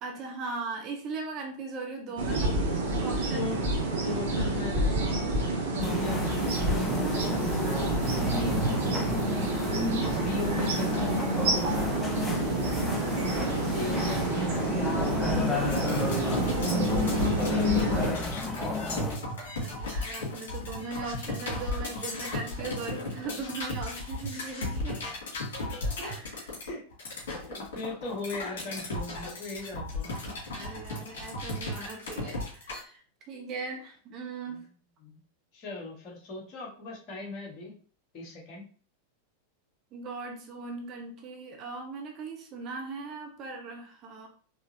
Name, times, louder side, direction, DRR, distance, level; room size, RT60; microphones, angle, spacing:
voice 1, 0.0-2.4 3.0-3.5 8.2-8.6 11.9-12.4 19.6-25.0 26.0-26.5 30.5-33.0 33.3-34.6 39.9-44.3, right 3 dB, 35° right, 2 dB, 1.0 m, -39 dB
sound 1, 2.2-18.1, right 2 dB, 60° right, 1.0 m, -29 dB
voice 2, 3.3-3.6 4.0-7.9 8.5-8.7 10.1-11.4 13.6-14.7 17.2-18.5 26.6-26.8 27.5-30.2 34.5-34.6 35.0-35.2 35.5-37.7 38.1-38.6, left 3 dB, 40° left, -2 dB, 1.6 m, -39 dB
sound 2, 5.8-19.2, left 3 dB, 10° left, 0.7 m, -31 dB
sound 3, 15.7-32.8, left 2 dB, 60° left, 2.1 m, -35 dB
4.6 x 3.0 x 2.8 m, 0.42 s
figure-of-eight pair, 90°, 0 cm